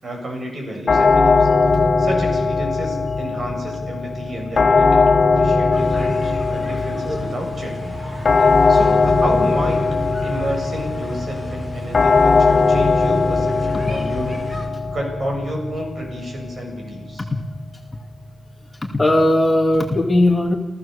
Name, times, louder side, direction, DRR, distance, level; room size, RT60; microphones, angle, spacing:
voice 1, 0.0-1.5 2.0-7.9 8.7-10.0 10.2-14.5 14.9-17.3, right 1 dB, 40° right, 2 dB, 7.9 m, -30 dB
sound 1, 0.9-19.8, left 4 dB, 45° left, 3.0 m, -20 dB
sound 2, 5.7-14.7, equal, 20° right, 5.4 m, -35 dB
voice 2, 18.8-20.5, left 1 dB, 15° left, 1 dB, 2.3 m, -17 dB
29.5 x 15.5 x 7.0 m, 1.1 s
wide cardioid pair, 135°, 0 cm